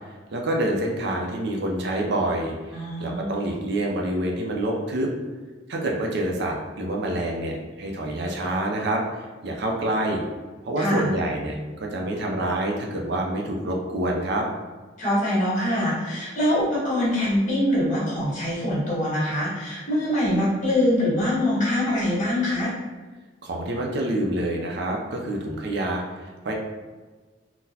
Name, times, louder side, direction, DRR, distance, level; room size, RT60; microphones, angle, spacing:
voice 1, 0.3-5.1 5.7-10.2 10.7-14.5 23.4-26.5, right 1 dB, 60° right, 0 dB, 0.5 m, -27 dB
voice 2, 2.7-3.3 10.8-11.1 15.0-22.7, left 1 dB, 45° left, -7 dB, 1.4 m, -24 dB
3.8 x 2.0 x 2.8 m, 1.3 s
head